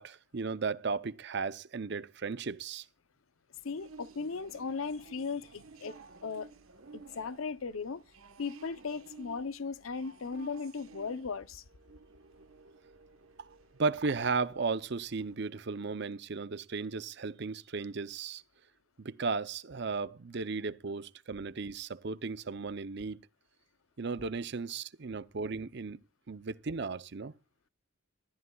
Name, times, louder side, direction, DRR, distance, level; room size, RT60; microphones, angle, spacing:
voice 1, 0.0-2.9 13.4-13.5 13.8-18.4 19.0-23.2 24.0-26.0 26.3-27.3, right 4 dB, 55° right, 0.6 m, -35 dB
voice 2, 3.6-6.0 6.2-6.5 6.9-8.0 8.4-11.6, left 4 dB, 80° left, 0.7 m, -37 dB
sound 1, 3.6-15.4, right 3 dB, 90° right, 1.2 m, -55 dB
22.0 x 13.5 x 2.3 m
head